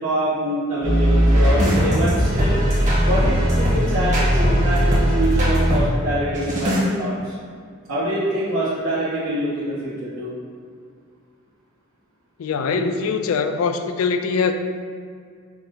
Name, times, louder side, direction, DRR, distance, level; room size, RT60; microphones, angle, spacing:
voice 1, 0.0-2.6 3.0-7.3 7.9-10.3 12.6-12.9, right 1 dB, 75° right, -12 dB, 1.1 m, -25 dB
sound 1, 0.8-5.8 6.3-6.8, equal, 35° right, 1.1 m, -18 dB
voice 2, 12.4-14.5, left 5 dB, 70° left, 8 dB, 0.3 m, -22 dB
5.8 x 2.1 x 3.9 m, 2.1 s
head